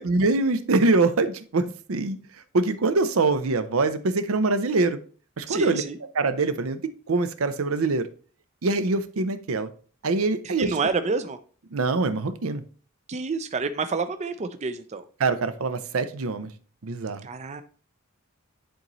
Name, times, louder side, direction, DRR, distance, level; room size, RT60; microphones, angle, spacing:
voice 1, 0.0-2.2 2.5-5.0 5.4-5.8 6.1-6.8 7.1-8.1 8.6-9.7 10.0-10.7 11.7-12.6 15.2-16.5 16.8-17.3, right 3 dB, 80° right, 11 dB, 0.6 m, -24 dB
voice 2, 5.5-6.0 10.4-11.4 13.1-15.0 17.2-17.6, right 4 dB, 30° right, 10 dB, 0.4 m, -28 dB
10.0 x 4.0 x 3.0 m, 0.40 s
head